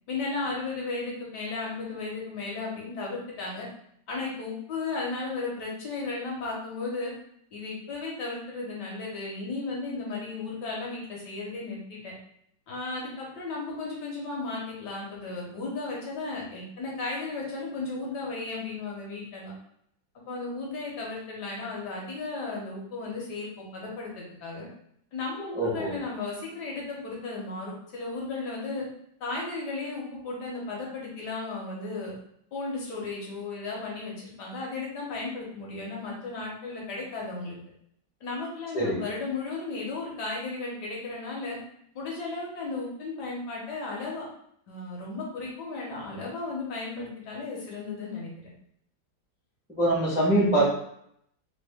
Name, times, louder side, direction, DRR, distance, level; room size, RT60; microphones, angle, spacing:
voice 1, 0.1-3.7 4.1-7.1 7.5-12.1 12.7-19.5 20.1-24.7 25.1-28.8 29.2-32.1 32.5-37.5 38.2-41.6 41.9-44.2 44.7-48.5, left 3 dB, 70° left, -3 dB, 1.4 m, -35 dB
voice 2, 25.5-26.0 38.7-39.0 49.7-50.7, right 1 dB, 5° right, -7 dB, 0.5 m, -23 dB
3.3 x 2.1 x 3.4 m, 0.71 s
omnidirectional pair, 2.0 m